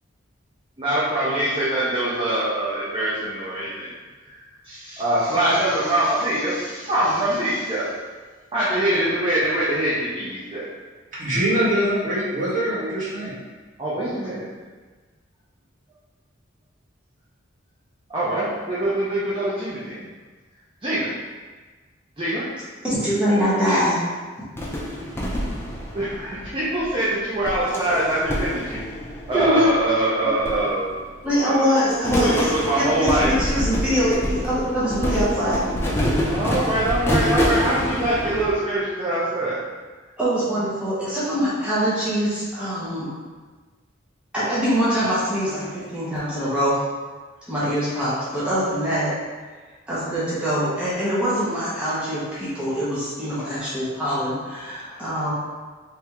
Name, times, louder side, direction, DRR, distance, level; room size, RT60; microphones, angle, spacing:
voice 1, 0.8-3.9 4.2-7.9 8.5-10.7 13.8-14.4 18.1-20.0 20.8-21.1 22.2-22.4 23.7-23.8 25.9-28.8 29.3-30.9 31.2-31.7 32.2-33.3 36.2-39.6 54.9-55.0, right 1 dB, 25° right, -9 dB, 0.7 m, -24 dB
voice 2, 11.1-13.3, right 1 dB, 40° right, -10 dB, 1.4 m, -23 dB
voice 3, 22.8-23.9 28.7-28.8 29.3-29.7 31.2-32.5 32.7-35.6 40.2-43.1 44.3-46.8 47.5-49.1 49.9-55.3, equal, 5° right, -11 dB, 1.0 m, -23 dB
sound 1, 24.6-26.9 27.4-29.9 30.4-31.3 31.6-38.5, equal, 15° left, 0.5 m, -26 dB
3.5 x 3.4 x 3.0 m, 1.4 s
head